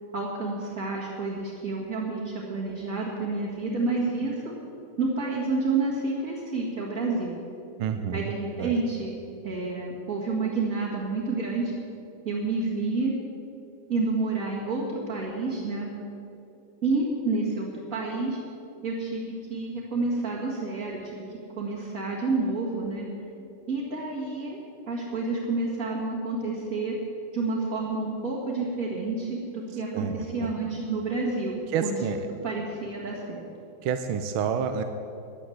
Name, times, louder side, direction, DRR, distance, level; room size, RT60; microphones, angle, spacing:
voice 1, 0.1-4.4 5.0-7.3 8.1-9.2 9.4-11.7 12.2-13.1 13.9-15.9 16.8-18.4 18.8-19.2 19.5-21.2 21.6-23.1 23.7-24.6 24.9-27.0 27.3-31.9 32.4-33.4, right 3 dB, 40° right, -6 dB, 2.4 m, -29 dB
voice 2, 7.8-8.3 8.6-8.8 29.9-30.5 31.7-32.2 33.8-34.8, right 7 dB, 80° right, 8 dB, 1.5 m, -29 dB
11.5 x 10.0 x 7.8 m, 2.7 s
omnidirectional pair, 2.3 m